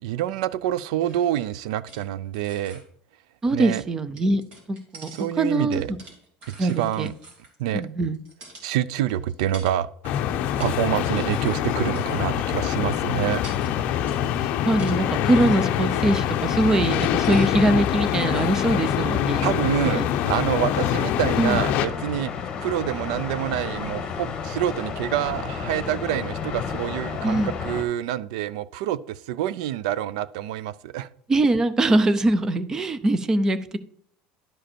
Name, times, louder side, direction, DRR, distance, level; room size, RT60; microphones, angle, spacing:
voice 1, 0.0-2.8 3.5-3.8 5.1-5.9 6.6-7.1 7.6-7.8 8.6-9.9 10.6-13.4 19.4-31.1, right 12 dB, 90° right, 18 dB, 0.4 m, -27 dB
sound 1, 1.0-2.1 2.3-2.8 4.2-7.8 8.1-8.7 9.1-9.8 10.3-10.8 11.0-12.3 12.9-13.0 13.3-15.9 16.4-17.5 17.9-18.7, right 2 dB, 40° right, 2.6 m, -47 dB
voice 2, 3.4-4.4 4.7-5.1 5.4-5.8 6.6-7.1 7.7-8.2 14.6-19.5 19.8-20.1 21.4-21.6 27.2-27.5 31.3-33.8, right 2 dB, 15° right, 13 dB, 0.5 m, -22 dB
sound 2, 10.0-21.9, left 10 dB, 45° left, 0.6 m, -24 dB
sound 3, 21.1-27.8, left 6 dB, 25° left, 1.3 m, -32 dB
11.0 x 5.2 x 4.4 m, 0.64 s
cardioid pair, 170°, 3 cm